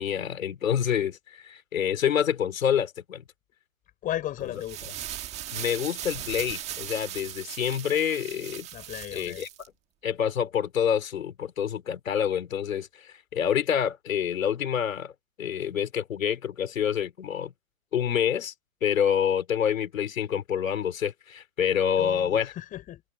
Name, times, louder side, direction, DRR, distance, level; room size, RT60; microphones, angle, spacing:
voice 1, 0.0-3.2 5.5-8.7 9.1-9.5 10.0-15.1 15.4-17.5 17.9-18.5 18.8-22.5, left 8 dB, 65° left, 3.4 m, -27 dB
voice 2, 4.0-5.0 8.7-9.4 22.0-23.0, left 13 dB, 20° left, 5.2 m, -35 dB
sound 1, 4.5-9.7, right 12 dB, 15° right, 1.6 m, -38 dB
hypercardioid pair, 150°, 42 cm